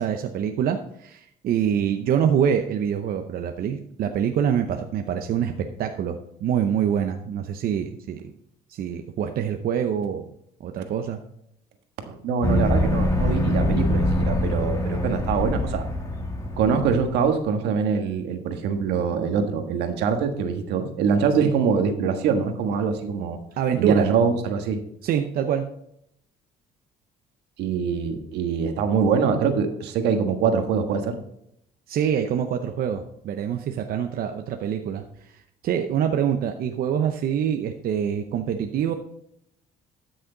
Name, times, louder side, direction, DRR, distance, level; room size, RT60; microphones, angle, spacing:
voice 1, 0.0-8.3 8.7-10.2 10.6-11.2 21.4-21.5 23.6-24.1 25.0-25.7 31.9-38.9, right 8 dB, 60° right, 5 dB, 0.8 m, -25 dB
voice 2, 12.0-15.9 16.6-23.4 23.8-24.8 27.6-31.2, right 6 dB, 80° right, 6 dB, 1.5 m, -24 dB
sound 1, 12.4-17.2, left 1 dB, 20° left, 2.1 m, -24 dB
12.5 x 6.4 x 3.9 m, 0.74 s
cardioid pair, 110°, 17 cm